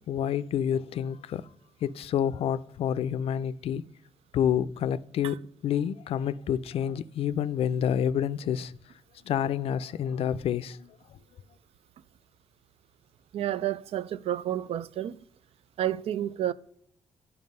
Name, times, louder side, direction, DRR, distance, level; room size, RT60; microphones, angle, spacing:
voice 1, 0.1-1.5 1.8-3.8 4.3-8.7 9.2-11.2, left 9 dB, 75° left, 0.4 m, -28 dB
voice 2, 13.3-15.2 15.8-16.5, right 12 dB, 80° right, 0.4 m, -30 dB
9.4 x 5.6 x 5.3 m
cardioid pair, 105°, 10 cm